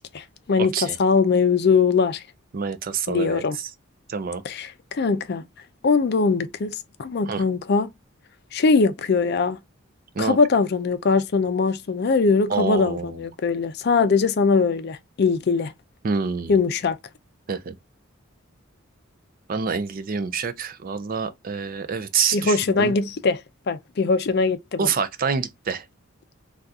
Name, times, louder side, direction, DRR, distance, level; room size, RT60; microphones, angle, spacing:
voice 1, 0.0-2.2 3.1-3.6 4.4-5.4 5.8-7.9 8.5-9.6 10.2-15.7 16.5-17.0 22.3-23.4 23.7-24.9, left 4 dB, 50° left, 0.4 m, -21 dB
voice 2, 0.6-1.0 2.5-3.7 4.1-4.4 7.3-7.4 10.2-10.4 12.5-13.2 16.0-16.6 17.5-17.7 19.5-22.9 24.8-25.8, right 5 dB, 40° right, 0.4 m, -27 dB
3.5 x 2.4 x 2.6 m
head